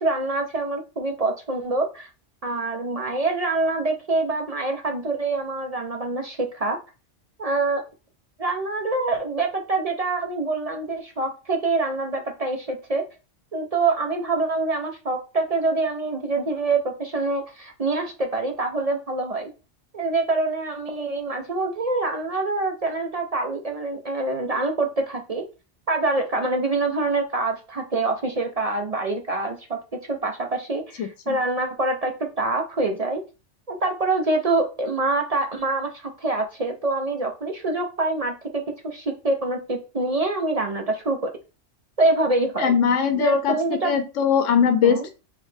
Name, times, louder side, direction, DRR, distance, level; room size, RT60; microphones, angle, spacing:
voice 1, 0.0-2.1 2.4-6.8 7.4-7.8 8.4-13.0 13.5-19.5 19.9-25.4 25.9-29.8 30.1-33.2 33.7-41.3 42.0-42.7 43.2-43.9 44.8-45.0, right 2 dB, 45° right, 3 dB, 0.5 m, -25 dB
voice 2, 31.0-31.4 42.6-45.1, left 7 dB, 80° left, 8 dB, 0.9 m, -21 dB
3.9 x 3.1 x 3.2 m, 0.31 s
omnidirectional pair, 1.2 m